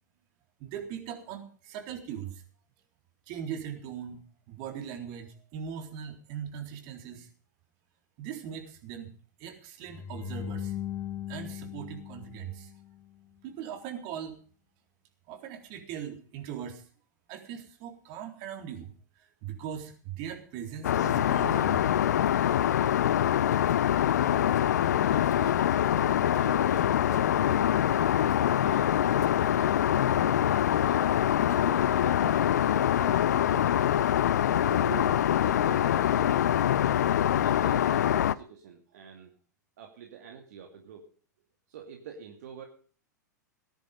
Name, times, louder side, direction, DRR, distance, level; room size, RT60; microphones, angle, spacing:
voice 1, 0.6-2.4 3.3-4.2 4.5-7.3 8.2-9.1 9.4-10.7 11.3-12.7 13.4-14.4 15.3-16.8 17.3-18.9 19.4-21.8, right 9 dB, 45° right, 5 dB, 3.9 m, -40 dB
sound 1, 9.9-13.1, left 10 dB, 25° left, 0.9 m, -38 dB
Aircraft, 20.8-38.4, left 11 dB, 65° left, 0.7 m, -24 dB
voice 2, 24.3-28.0 28.5-31.2 31.5-32.4 32.7-33.8 34.5-36.6 37.1-39.3 39.8-41.0 41.7-42.7, right 7 dB, 60° right, 3 dB, 2.5 m, -46 dB
sound 2, 32.0-37.7, right 1 dB, 85° right, 7.1 m, -50 dB
18.0 x 11.0 x 5.3 m, 0.44 s
figure-of-eight pair, 95°, 10 cm